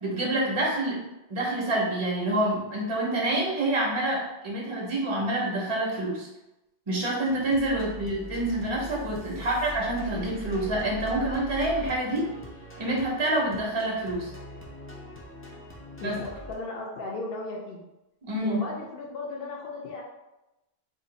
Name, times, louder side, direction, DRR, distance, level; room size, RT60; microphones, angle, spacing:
voice 1, 0.0-1.0 1.3-6.3 6.9-12.3 12.8-14.3 16.0-16.2 18.2-18.6, right 1 dB, 35° right, -3 dB, 0.7 m, -27 dB
sound 1, 7.2-16.5, equal, 20° left, 0.4 m, -41 dB
voice 2, 16.0-17.8 18.4-20.0, left 3 dB, 70° left, -2 dB, 0.8 m, -36 dB
2.6 x 2.3 x 3.9 m, 0.97 s
omnidirectional pair, 1.0 m